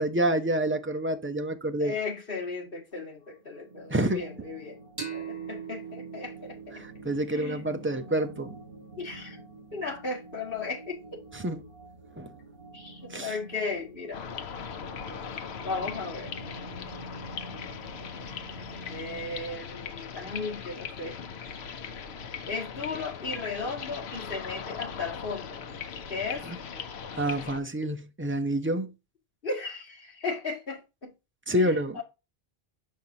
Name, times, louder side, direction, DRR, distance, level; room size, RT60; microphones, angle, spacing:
voice 1, 0.0-1.9 3.9-4.2 6.7-8.6 11.3-11.6 12.2-12.3 13.1-13.3 26.5-26.6 27.2-28.9 31.5-32.0, right 1 dB, 15° right, 0.6 m, -28 dB
voice 2, 1.8-4.8 5.1-6.8 7.3-7.6 9.0-9.4 9.7-11.2 12.7-14.2 15.6-16.3 18.9-21.2 22.5-25.6 26.1-26.5 29.4-31.1 31.6-32.0, left 4 dB, 60° left, 2.1 m, -35 dB
sound 1, 3.1-19.6, right 2 dB, 60° right, 1.7 m, -48 dB
sound 2, 5.0-8.3, right 7 dB, 30° right, 2.3 m, -41 dB
sound 3, 14.1-27.6, left 6 dB, 90° left, 1.0 m, -39 dB
6.5 x 5.3 x 2.8 m
omnidirectional pair, 1.0 m